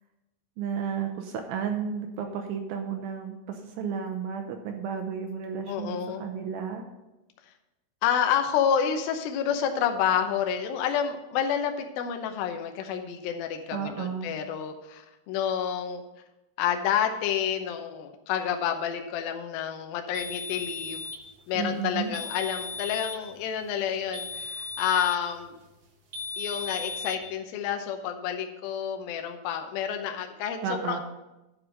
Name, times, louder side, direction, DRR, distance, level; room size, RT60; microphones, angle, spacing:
voice 1, 0.6-6.9 13.7-14.3 21.5-22.1 30.6-31.0, right 7 dB, 80° right, 4 dB, 2.4 m, -32 dB
voice 2, 5.7-6.2 8.0-16.0 16.6-21.1 21.5-25.6 26.4-31.0, left 8 dB, 75° left, 5 dB, 2.6 m, -29 dB
sound 1, 20.1-21.3 22.1-23.3 24.1-25.3 26.1-27.2, left 3 dB, 60° right, 1.2 m, -36 dB
10.5 x 4.8 x 6.5 m, 1.0 s
omnidirectional pair, 4.4 m